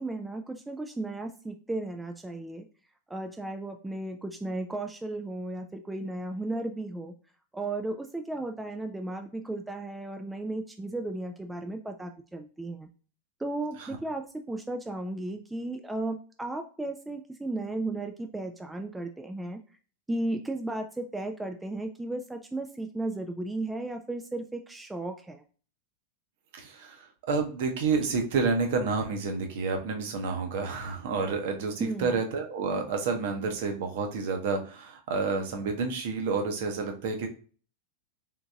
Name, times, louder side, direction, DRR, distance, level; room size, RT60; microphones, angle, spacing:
voice 1, 0.0-2.7 3.1-7.1 7.5-12.9 13.4-19.6 20.1-25.4 31.8-32.2, right 2 dB, 5° right, 5 dB, 0.3 m, -35 dB
voice 2, 26.5-27.0 27.3-37.3, right 4 dB, 55° right, 4 dB, 0.8 m, -29 dB
3.8 x 3.7 x 2.3 m, 0.40 s
figure-of-eight pair, 90°, 0 cm